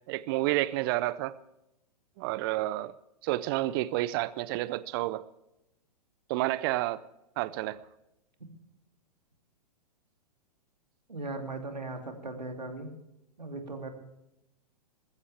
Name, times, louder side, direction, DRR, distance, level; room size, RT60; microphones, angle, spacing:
voice 1, 0.1-1.4 2.2-2.9 3.2-5.2 6.3-7.0 7.4-7.8, right 17 dB, 35° right, 19 dB, 0.6 m, -30 dB
voice 2, 11.1-12.9 13.4-13.9, right 2 dB, 85° right, 4 dB, 2.7 m, -38 dB
20.0 x 14.5 x 3.4 m, 0.87 s
figure-of-eight pair, 110°, 21 cm